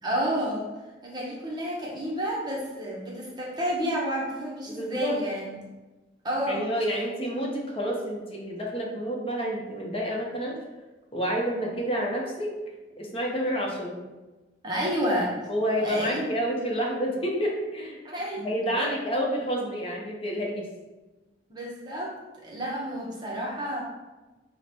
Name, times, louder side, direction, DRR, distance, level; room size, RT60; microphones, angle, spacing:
voice 1, 0.0-0.7 1.0-5.5 6.2-6.6 14.6-15.3 15.8-16.3 18.0-18.4 18.8-18.9 21.5-22.1 22.4-23.8, equal, 25° right, -4 dB, 0.7 m, -30 dB
voice 2, 4.7-5.2 6.5-10.6 11.1-12.5 13.0-14.0 15.5-18.0 18.4-20.7, equal, 35° left, -1 dB, 0.8 m, -29 dB
4.7 x 2.1 x 4.2 m, 1.2 s
head